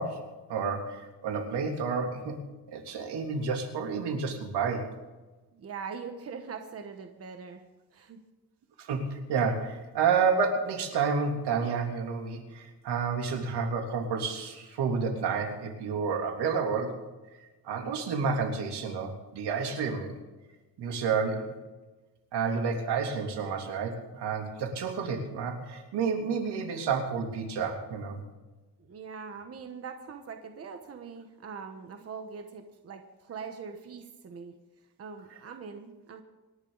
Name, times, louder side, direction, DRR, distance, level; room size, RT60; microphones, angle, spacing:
voice 1, 0.0-2.4 2.7-4.9 8.8-17.0 17.6-20.1 20.8-21.6 22.3-28.2, right 5 dB, 85° right, 2 dB, 3.3 m, -30 dB
voice 2, 5.5-7.6 7.9-8.2 28.8-34.6 35.0-36.2, right 5 dB, 35° right, 5 dB, 1.3 m, -42 dB
26.5 x 11.0 x 4.1 m, 1.2 s
cardioid pair, 160°, 39 cm